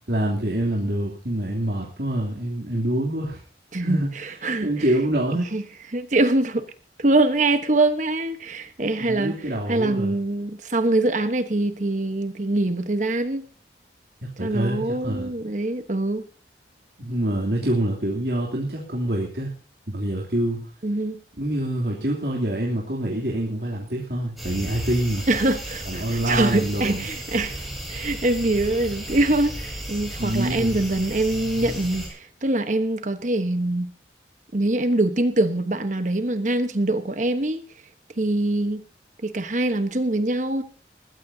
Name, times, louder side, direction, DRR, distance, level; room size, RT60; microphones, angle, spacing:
voice 1, 0.1-3.4 3.8-4.1 4.6-5.5 9.0-10.1 14.4-15.3 17.0-19.5 19.9-20.7 21.4-25.3 25.9-27.0 30.2-30.8, right 1 dB, 60° right, 3.1 m, -26 dB
voice 2, 3.7-4.9 5.5-5.6 5.9-6.7 7.0-9.4 9.7-13.5 14.4-16.3 20.8-21.2 25.3-33.9 34.5-37.6 38.2-38.8 39.2-40.6, right 2 dB, 45° right, 1.2 m, -24 dB
sound 1, 24.4-32.1, right 1 dB, ahead, 6.8 m, -34 dB
21.0 x 15.0 x 2.8 m
head